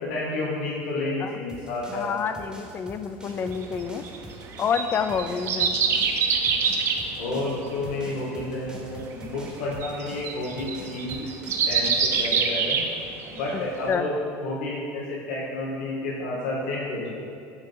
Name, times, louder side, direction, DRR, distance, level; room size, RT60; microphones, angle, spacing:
voice 1, 0.0-2.2 7.2-11.3 11.7-12.8 13.3-14.1 14.4-17.1, left 2 dB, 90° left, -6 dB, 1.1 m, -30 dB
sound 1, 1.5-12.4, right 2 dB, 10° right, 0.9 m, -44 dB
voice 2, 1.9-4.0 4.6-5.8 13.5-14.1, left 6 dB, 30° left, 10 dB, 0.3 m, -28 dB
sound 2, 3.5-13.5 13.9-14.0, right 5 dB, 45° right, 0.6 m, -26 dB
7.0 x 2.8 x 5.4 m, 2.5 s
supercardioid pair, 125°, 6 cm